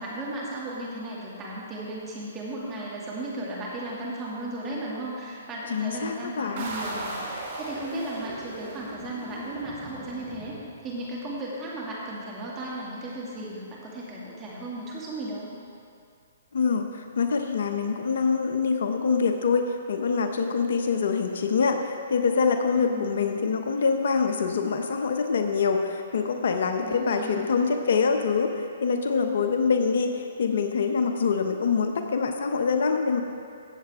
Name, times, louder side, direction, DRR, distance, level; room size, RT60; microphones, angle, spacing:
voice 1, 0.0-15.5 22.7-23.1 26.8-27.5, right 1 dB, 20° right, -5 dB, 2.3 m, -35 dB
voice 2, 5.7-6.7 16.5-33.2, left 5 dB, 65° left, 5 dB, 0.8 m, -25 dB
sound 1, 6.6-11.1, right 2 dB, 50° right, 2.9 m, -38 dB
15.5 x 7.6 x 3.5 m, 2.4 s
hypercardioid pair, 135°, 0 cm